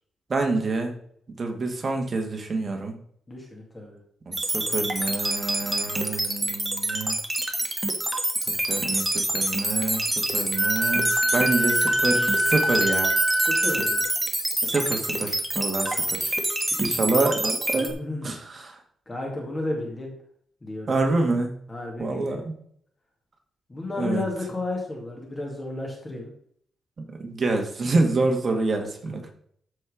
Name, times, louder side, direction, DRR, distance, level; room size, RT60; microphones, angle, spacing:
voice 1, 0.3-1.0 1.3-2.9 4.3-7.2 8.5-10.0 10.3-13.1 14.6-16.3 16.8-17.9 18.2-18.8 20.9-21.6 22.0-22.5 24.0-24.2 27.2-29.3, right 3 dB, 30° right, 3 dB, 1.8 m, -27 dB
voice 2, 3.3-4.0 13.5-14.1 17.8-18.3 19.1-20.1 20.6-21.0 21.7-22.4 23.7-26.3 29.0-29.2, left 2 dB, 20° left, -1 dB, 2.2 m, -33 dB
sound 1, 4.3-17.9, right 1 dB, 10° right, 1.2 m, -27 dB
Wind instrument woodwind instrument, 10.5-14.1, equal, 75° right, 2.5 m, -24 dB
13.0 x 4.4 x 5.0 m, 0.65 s
wide cardioid pair, 160°, 0 cm